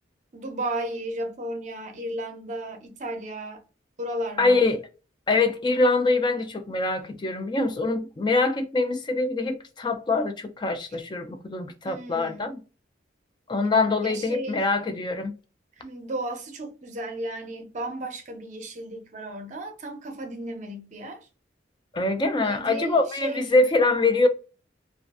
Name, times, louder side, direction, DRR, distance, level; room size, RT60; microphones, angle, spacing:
voice 1, 0.3-3.6 4.0-4.7 11.8-12.5 14.0-14.6 15.8-21.3 22.4-23.4, right 1 dB, 40° right, 0.6 m, -34 dB
voice 2, 4.4-4.8 5.3-12.6 13.5-15.3 21.9-24.3, left 3 dB, 25° left, 0.3 m, -24 dB
2.4 x 2.4 x 2.3 m
head